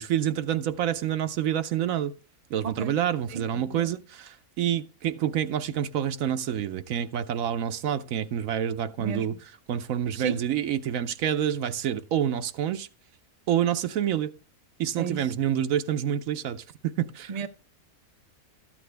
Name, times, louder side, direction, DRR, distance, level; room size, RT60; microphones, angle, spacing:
voice 1, 0.0-2.1 2.5-9.4 9.7-12.9 13.5-14.3 14.8-17.4, right 10 dB, 70° right, 1.0 m, -28 dB
voice 2, 3.3-3.9 9.0-9.3 10.1-10.4 15.0-15.3 17.3-17.5, right 6 dB, 55° right, 0.4 m, -33 dB
13.5 x 8.6 x 3.3 m
omnidirectional pair, 1.6 m